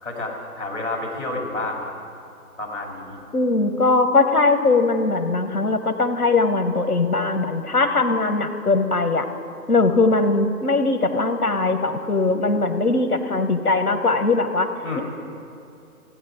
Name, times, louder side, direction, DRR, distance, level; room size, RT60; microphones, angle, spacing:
voice 1, 0.0-1.9 2.6-3.3 14.8-15.0, left 2 dB, 50° left, -1 dB, 2.7 m, -30 dB
voice 2, 3.3-9.3 9.7-14.7, left 3 dB, 85° left, 8 dB, 1.0 m, -20 dB
15.0 x 9.2 x 4.6 m, 2.7 s
figure-of-eight pair, 150°, 44 cm